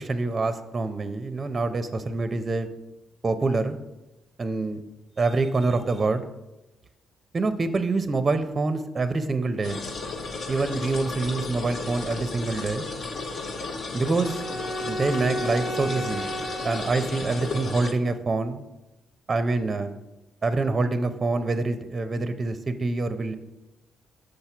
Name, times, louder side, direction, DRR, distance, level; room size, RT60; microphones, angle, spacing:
voice 1, 0.0-2.7 3.2-3.8 4.4-4.8 5.2-6.2 7.3-9.8 10.5-12.8 13.9-14.4 14.9-16.2 16.6-18.6 19.3-19.9 20.4-23.3, right 3 dB, 30° right, 10 dB, 0.5 m, -26 dB
sound 1, 9.6-17.9, left 3 dB, 55° left, 0.8 m, -34 dB
Bowed string instrument, 14.2-17.7, right 1 dB, 25° left, 0.9 m, -33 dB
6.4 x 4.3 x 5.9 m, 0.99 s
cardioid pair, 90°, 0 cm